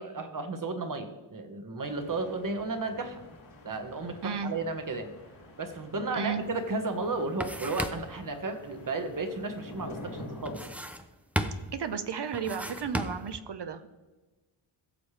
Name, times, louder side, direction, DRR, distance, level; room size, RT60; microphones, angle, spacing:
voice 1, 0.0-3.2 3.6-5.1 5.6-10.6, right 3 dB, 40° right, 7 dB, 1.2 m, -33 dB
sound 1, 1.8-10.6, left 1 dB, 85° left, 3.4 m, -48 dB
voice 2, 4.2-4.5 6.1-6.4 11.7-13.9, right 6 dB, 55° right, 10 dB, 0.7 m, -33 dB
sound 2, 6.5-6.6 7.0-8.2 10.4-11.1 11.4-11.8 12.3-13.4, equal, 5° right, 0.6 m, -34 dB
16.0 x 7.1 x 3.3 m, 1.2 s
wide cardioid pair, 110°, 49 cm